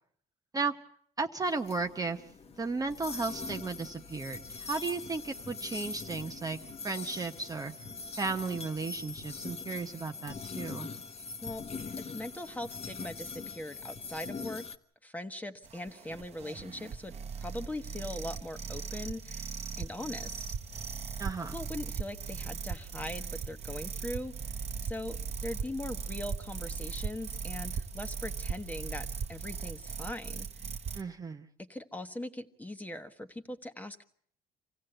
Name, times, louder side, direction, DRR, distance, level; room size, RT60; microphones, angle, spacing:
voice 1, 1.2-2.2 2.6-6.6 6.8-7.7 8.2-10.9 21.2-21.5 30.9-31.5, right 4 dB, 20° right, 5 dB, 0.9 m, -34 dB
sound 1, 1.4-14.7, left 4 dB, 40° left, 1.2 m, -42 dB
voice 2, 12.0-14.6 15.0-19.5 19.8-20.4 21.5-24.5 24.8-30.6 31.6-34.0, left 1 dB, 10° left, 8 dB, 1.3 m, -41 dB
sound 2, 15.6-31.0, right 6 dB, 40° right, 1.1 m, -38 dB
26.0 x 16.0 x 7.9 m, 0.64 s
cardioid pair, 110°, 17 cm